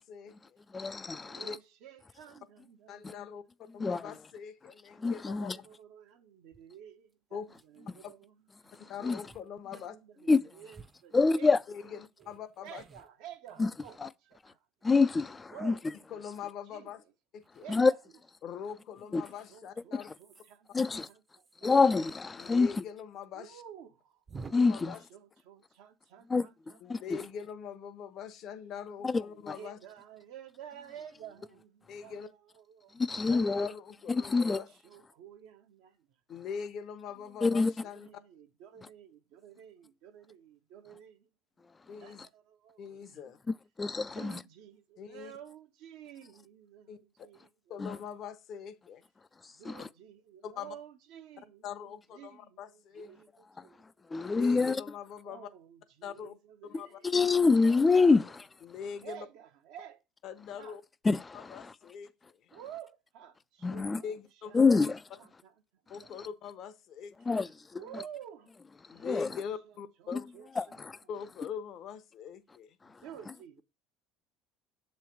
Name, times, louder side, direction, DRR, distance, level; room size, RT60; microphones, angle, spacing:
voice 1, 0.0-0.6 1.3-1.6 2.9-3.4 3.7-5.6 7.3-7.5 8.9-9.9 11.7-11.8 12.3-12.8 16.1-17.0 17.3-17.7 18.4-20.1 22.4-23.6 24.6-25.0 26.8-29.8 31.9-32.3 33.3-34.7 36.3-38.1 41.9-42.2 42.8-43.4 45.0-45.3 46.9-47.0 47.7-49.0 50.4-50.7 51.6-53.1 54.2-55.5 56.0-56.3 56.8-57.0 58.6-59.3 60.2-60.8 61.3-62.4 64.0-64.7 65.9-67.1 68.9-70.3 71.1-72.8, left 7 dB, 55° left, 0.7 m, -42 dB
voice 2, 0.7-1.4 3.0-3.1 3.8-4.1 5.0-5.6 8.7-9.2 10.3-10.4 11.1-11.6 13.6-13.7 14.0-14.1 14.8-15.7 17.7-17.9 19.1-19.2 20.7-21.1 21.6-22.8 24.5-25.0 26.3-26.5 26.9-27.2 29.0-29.6 32.9-33.7 34.1-34.6 37.4-37.7 43.5-44.4 47.8-48.0 49.4-49.9 53.6-54.8 56.7-58.5 61.0-61.7 63.6-64.0 64.5-65.0 66.2-66.3 67.2-67.8 68.9-69.4 70.1-70.2 70.6-71.0 72.8-73.0, left 4 dB, 20° left, 0.3 m, -27 dB
voice 3, 1.2-3.4 5.4-8.8 9.7-11.5 12.2-14.0 14.2-14.7 15.5-15.8 16.7-16.9 17.6-18.0 19.1-21.7 23.3-24.2 24.8-27.1 29.5-33.0 34.4-36.2 37.8-41.3 41.6-43.2 44.1-47.8 49.5-53.8 55.2-57.5 59.0-60.0 60.6-60.8 62.5-64.6 65.2-66.2 67.2-68.5 68.9-70.8 72.8-73.6, right 9 dB, 70° right, 0.8 m, -52 dB
sound 1, 6.5-6.6 7.1-7.2 7.4-7.8 8.7-8.8 9.3-9.5 9.8-9.9 10.7-11.7 12.2-14.4 15.0-15.7 17.4-17.7 19.0-19.3 20.1-22.9 23.1-23.2 23.5-23.6 24.3-24.5, right 4 dB, 30° right, 0.6 m, -53 dB
6.8 x 3.2 x 5.7 m
supercardioid pair, 85°, 0 cm